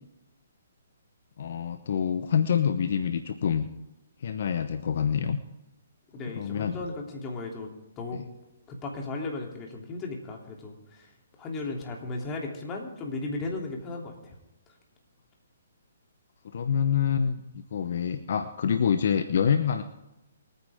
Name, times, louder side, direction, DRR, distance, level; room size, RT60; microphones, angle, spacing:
voice 1, 1.4-3.7 4.2-5.4 6.3-6.8 8.1-8.2 16.4-17.4 17.7-19.8, left 7 dB, 60° left, 9 dB, 1.0 m, -26 dB
voice 2, 6.1-7.7 8.0-8.2 8.7-11.1 11.4-14.3, left 3 dB, 20° left, 0 dB, 3.1 m, -35 dB
24.0 x 9.6 x 3.7 m, 0.95 s
hypercardioid pair, 140°, 0 cm